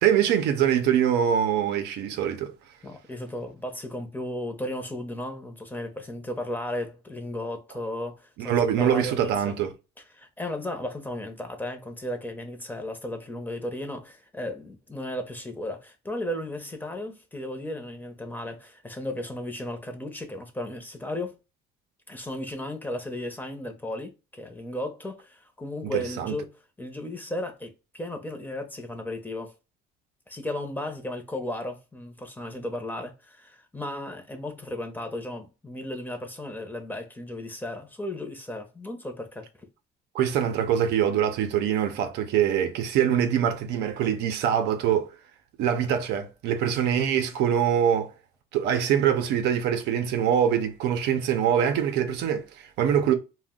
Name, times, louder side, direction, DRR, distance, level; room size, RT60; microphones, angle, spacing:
voice 1, 0.0-2.5 8.4-9.7 25.9-26.3 40.1-45.1 45.6-48.1 48.5-53.1, right 9 dB, 85° right, 0.5 m, -24 dB
voice 2, 2.8-9.6 10.1-21.4 22.1-29.5 30.3-39.5, left 1 dB, 10° left, 0.6 m, -35 dB
2.3 x 2.1 x 3.6 m
cardioid pair, 110°, 17 cm